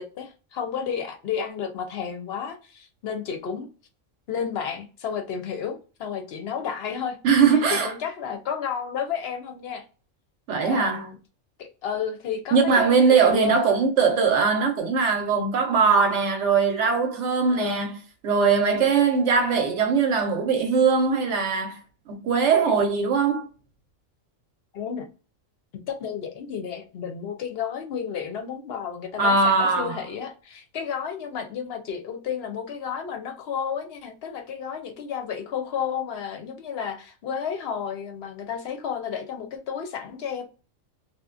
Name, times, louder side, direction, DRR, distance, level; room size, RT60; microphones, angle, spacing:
voice 1, 0.0-3.7 4.3-7.2 7.5-9.8 10.6-11.2 11.6-13.8 17.5-17.8 24.7-25.1 25.9-40.4, left 7 dB, 60° left, 0.7 m, -32 dB
voice 2, 7.2-7.9 10.5-11.1 12.5-17.9 18.2-21.8 22.1-23.5 29.2-30.0, right 5 dB, 70° right, 0.9 m, -21 dB
2.8 x 2.1 x 2.3 m
omnidirectional pair, 1.4 m